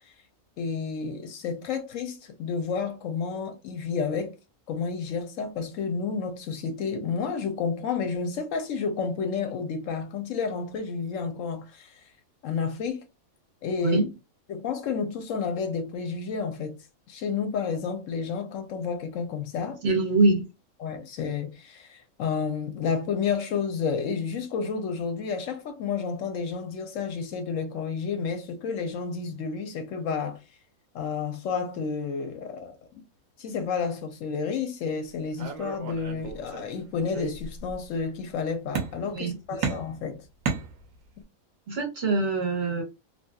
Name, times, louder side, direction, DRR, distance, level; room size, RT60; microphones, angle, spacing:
voice 1, 0.6-4.4 4.7-12.0 12.4-13.0 13.6-14.0 14.5-16.8 17.1-19.8 20.8-30.4 30.9-32.8 33.4-40.2, left 5 dB, 70° left, 0.9 m, -30 dB
voice 2, 19.8-20.4 39.1-39.8 41.7-42.8, right 3 dB, 50° right, 0.9 m, -24 dB
sound 1, 35.4-36.7 37.1-37.8 38.8-39.3 39.6-41.2, right 5 dB, 70° right, 1.1 m, -33 dB
2.8 x 2.7 x 2.2 m
omnidirectional pair, 1.5 m